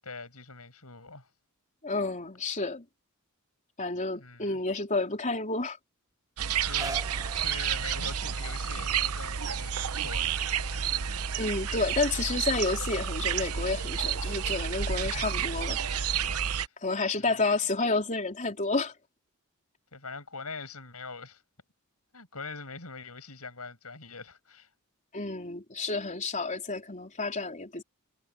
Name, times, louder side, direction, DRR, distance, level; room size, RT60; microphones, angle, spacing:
voice 1, 0.0-1.3 4.1-4.6 6.6-10.8 17.1-17.5 19.9-21.4 22.1-24.7, left 4 dB, 80° left, 7.9 m, -43 dB
voice 2, 1.8-2.8 3.8-5.8 11.4-16.0 16.8-18.9 25.1-27.8, left 3 dB, 35° left, 4.3 m, -30 dB
sound 1, 6.4-16.7, right 7 dB, 85° right, 0.9 m, -30 dB
sound 2, 6.5-12.6 13.3-13.4, right 2 dB, 15° right, 5.4 m, -46 dB
head